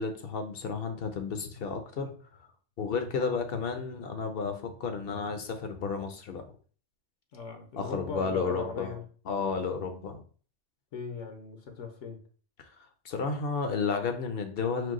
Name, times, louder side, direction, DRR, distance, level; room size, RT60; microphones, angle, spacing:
voice 1, 0.0-2.1 2.8-6.4 7.8-9.0 9.3-10.2 12.6-14.9, left 5 dB, 55° left, 0.8 m, -32 dB
voice 2, 7.3-9.0 10.9-12.2, left 4 dB, 75° left, 1.1 m, -39 dB
4.6 x 2.3 x 3.7 m
omnidirectional pair, 1.3 m